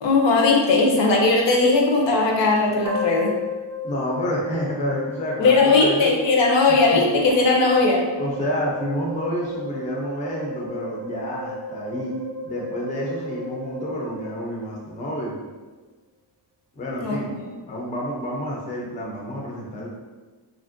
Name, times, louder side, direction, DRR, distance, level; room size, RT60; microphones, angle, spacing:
voice 1, 0.0-3.3 5.4-8.0 16.9-17.2, left 3 dB, 70° left, 0 dB, 0.6 m, -18 dB
sound 1, 2.8-15.1, left 2 dB, 45° right, 0.5 m, -34 dB
voice 2, 3.8-6.1 6.7-7.0 8.2-12.1 12.4-15.4 16.7-17.3 17.7-19.9, equal, 20° left, -3 dB, 0.3 m, -29 dB
2.8 x 2.5 x 2.4 m, 1.3 s
wide cardioid pair, 175°, 46 cm